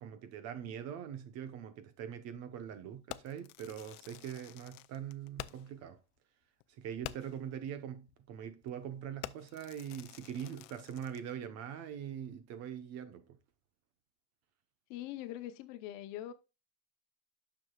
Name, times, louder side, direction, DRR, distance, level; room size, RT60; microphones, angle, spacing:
voice 1, 0.0-6.0 6.8-13.2, right 9 dB, 45° right, 0.9 m, -43 dB
Fireworks, 3.1-5.8 6.2-6.3 6.6-6.7 7.0-7.5 8.1-8.3 8.6-8.9 9.2-11.3, left 18 dB, 90° left, 0.6 m, -48 dB
voice 2, 14.9-16.3, left 13 dB, 60° left, 0.8 m, -42 dB
9.6 x 6.3 x 2.3 m
cardioid pair, 175°, 36 cm